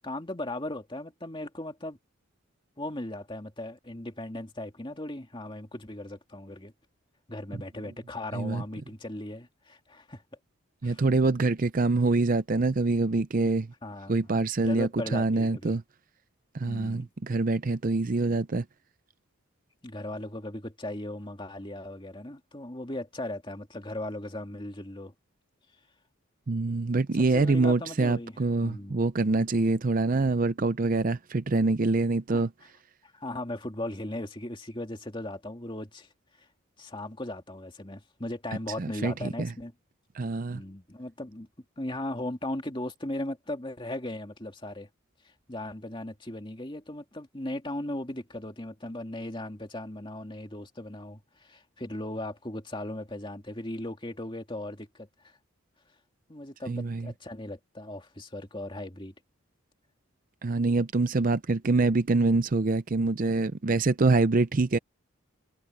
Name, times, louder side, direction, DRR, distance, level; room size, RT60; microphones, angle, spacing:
voice 1, 0.0-2.0 2.8-6.7 7.3-10.2 10.8-11.0 13.8-14.1 14.6-15.8 16.6-17.1 19.8-25.1 27.1-29.0 32.3-32.4 33.0-36.1 36.4-36.5 36.8-39.7 40.5-41.5 41.8-44.9 45.2-55.3 56.3-59.1, left 1 dB, 25° left, 2.5 m, -37 dB
voice 2, 8.3-8.6 10.8-13.7 14.1-15.8 16.5-18.7 26.5-32.5 38.8-39.6 40.1-40.6 56.7-57.1 60.4-64.8, right 3 dB, 40° right, 0.5 m, -25 dB
head